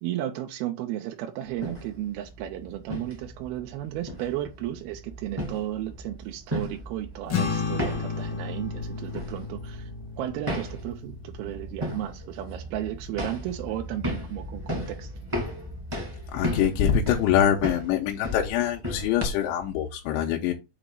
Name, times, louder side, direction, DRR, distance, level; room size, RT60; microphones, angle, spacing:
voice 1, 0.0-9.9 10.2-15.1, right 13 dB, 85° right, 2.2 m, -34 dB
sound 1, 1.5-19.2, equal, 20° right, 0.8 m, -36 dB
sound 2, 7.3-13.9, left 5 dB, 60° left, 1.3 m, -34 dB
voice 2, 16.3-20.5, left 9 dB, 85° left, 2.9 m, -24 dB
7.3 x 3.0 x 5.2 m
omnidirectional pair, 5.4 m